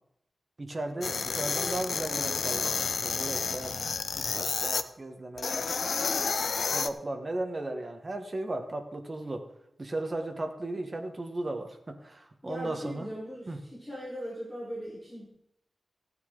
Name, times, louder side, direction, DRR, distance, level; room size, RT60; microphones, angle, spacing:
voice 1, 0.6-3.8 4.2-5.9 6.7-9.5 9.8-13.1 13.5-13.6, right 2 dB, 25° right, 4 dB, 1.4 m, -36 dB
sound 1, 1.0-4.8 5.4-6.9, left 5 dB, 65° left, 0.6 m, -30 dB
voice 2, 12.4-15.3, equal, 5° left, -8 dB, 4.4 m, -39 dB
15.5 x 9.5 x 3.9 m, 0.79 s
wide cardioid pair, 175°, 0 cm